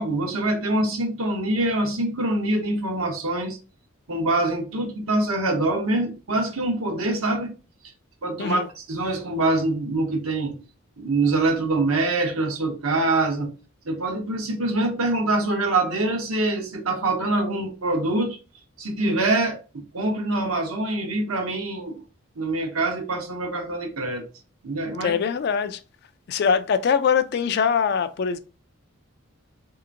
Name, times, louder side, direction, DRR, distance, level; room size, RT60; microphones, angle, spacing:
voice 1, 0.0-3.6 4.1-7.5 8.2-10.6 11.0-13.5 13.8-18.4 18.8-22.0 22.4-24.3 24.6-25.2, right 2 dB, 80° right, 0.9 m, -24 dB
voice 2, 25.0-25.8 26.3-28.4, left 6 dB, 50° left, 0.3 m, -22 dB
3.3 x 2.8 x 2.5 m
head